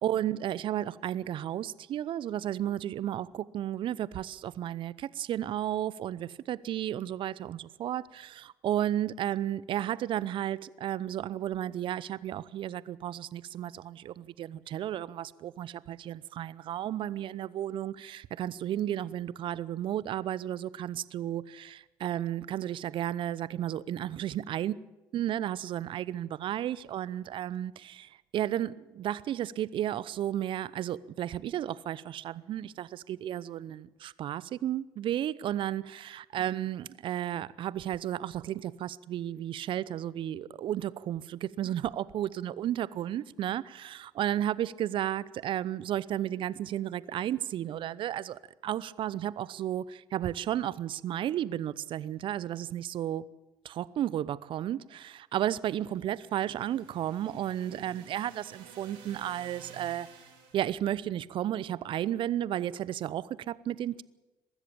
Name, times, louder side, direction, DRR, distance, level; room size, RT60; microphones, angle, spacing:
voice 1, 0.0-24.7 25.1-53.3 53.6-60.1 60.5-64.0, right 11 dB, 55° right, 0.7 m, -33 dB
sound 1, 55.8-60.7, right 7 dB, 75° right, 4.9 m, -53 dB
23.0 x 13.5 x 8.6 m
hypercardioid pair, 55°, 10 cm